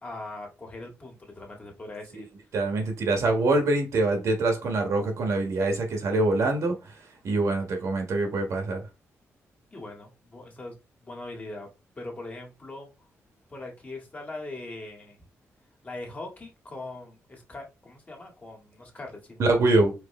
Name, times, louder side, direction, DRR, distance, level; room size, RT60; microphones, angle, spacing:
voice 1, 0.0-2.3 9.7-10.7 11.0-11.7 12.0-12.9 13.5-15.2 15.8-19.8, left 2 dB, 30° left, 1.8 m, -41 dB
voice 2, 2.5-7.0 7.2-8.8 19.4-19.9, right 2 dB, 75° right, 1.5 m, -24 dB
4.8 x 3.1 x 3.2 m
cardioid pair, 100°, 5 cm